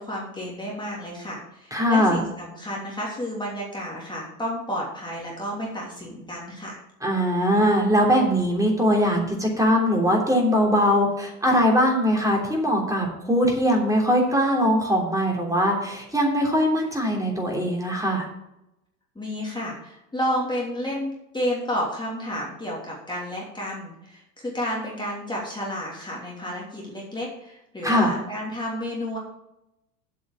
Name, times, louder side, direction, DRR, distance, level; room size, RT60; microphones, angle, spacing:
voice 1, 0.0-6.8 19.1-29.2, equal, 10° left, -4 dB, 2.9 m, -31 dB
voice 2, 1.7-2.2 7.0-18.2 27.8-28.1, equal, 5° right, -1 dB, 3.3 m, -21 dB
8.3 x 6.3 x 7.5 m, 0.85 s
hypercardioid pair, 75°, 48 cm